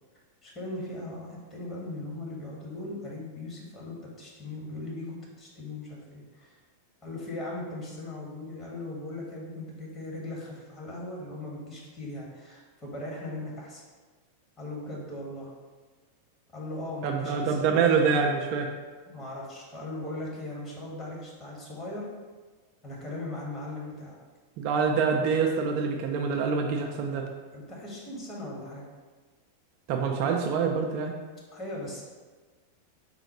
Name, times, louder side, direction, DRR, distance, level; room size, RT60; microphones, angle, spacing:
voice 1, 0.4-6.6 7.0-13.8 14.6-15.5 16.5-17.6 18.0-18.3 19.1-22.1 22.8-24.2 27.5-28.9 31.5-32.0, left 2 dB, 25° left, -4 dB, 1.3 m, -39 dB
voice 2, 17.0-18.7 24.6-27.3 29.9-31.1, right 5 dB, 45° right, 3 dB, 0.4 m, -25 dB
4.2 x 2.3 x 4.3 m, 1.4 s
figure-of-eight pair, 90°, 0 cm